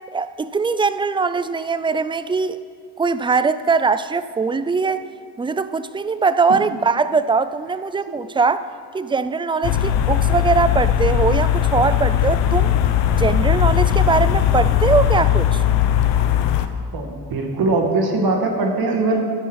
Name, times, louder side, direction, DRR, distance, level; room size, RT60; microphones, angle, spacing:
voice 1, 0.1-2.6 3.0-5.0 5.4-8.7 8.9-12.8 13.2-15.6, right 4 dB, 15° right, 13 dB, 0.3 m, -21 dB
sound 1, 9.6-16.7, left 10 dB, 85° left, 0.9 m, -18 dB
voice 2, 16.9-19.3, right 3 dB, 60° right, 2 dB, 2.1 m, -21 dB
13.5 x 10.0 x 4.7 m, 2.1 s
cardioid pair, 110°, 41 cm